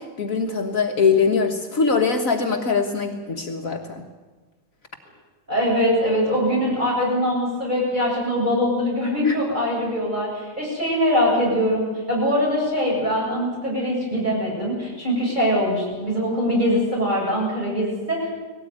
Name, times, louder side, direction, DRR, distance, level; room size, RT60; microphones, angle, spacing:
voice 1, 0.0-4.0 9.2-9.4, left 5 dB, 55° left, 3 dB, 1.8 m, -22 dB
voice 2, 5.5-18.3, equal, 25° right, -3 dB, 8.2 m, -22 dB
19.5 x 17.5 x 9.4 m, 1.3 s
omnidirectional pair, 1.7 m